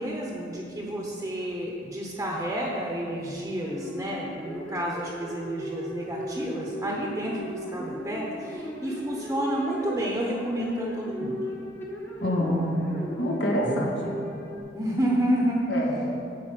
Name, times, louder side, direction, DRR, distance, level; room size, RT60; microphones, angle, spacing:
voice 1, 0.0-11.4 13.7-13.9 14.7-15.7, right 1 dB, 15° right, -2 dB, 0.9 m, -30 dB
sound 1, 3.6-14.6, equal, 10° left, 1.0 m, -37 dB
voice 2, 12.2-12.8 13.2-14.1 15.7-16.1, equal, 75° left, -3 dB, 1.9 m, -26 dB
9.4 x 5.4 x 7.6 m, 2.5 s
head